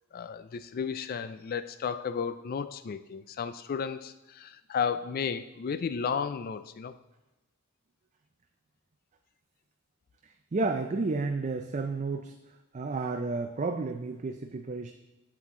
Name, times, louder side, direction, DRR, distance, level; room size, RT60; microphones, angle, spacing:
voice 1, 0.1-7.0, left 6 dB, 45° left, 0.3 m, -33 dB
voice 2, 10.5-12.3 12.7-14.9, right 3 dB, 35° right, 0.4 m, -31 dB
8.1 x 7.6 x 3.7 m
head